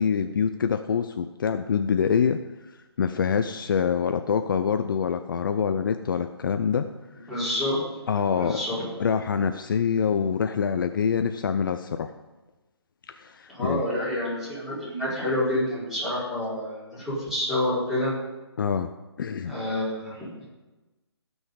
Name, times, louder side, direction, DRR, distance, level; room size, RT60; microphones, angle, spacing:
voice 1, 0.0-2.4 3.0-6.9 8.1-8.6 9.0-12.1 13.1-13.8 18.6-18.9 19.2-19.5, left 6 dB, 50° left, 8 dB, 0.6 m, -25 dB
voice 2, 7.3-7.8 8.4-8.8 13.5-18.1 19.4-20.4, left 1 dB, ahead, -10 dB, 4.4 m, -28 dB
17.5 x 6.3 x 5.2 m, 1.1 s
hypercardioid pair, 155°, 14 cm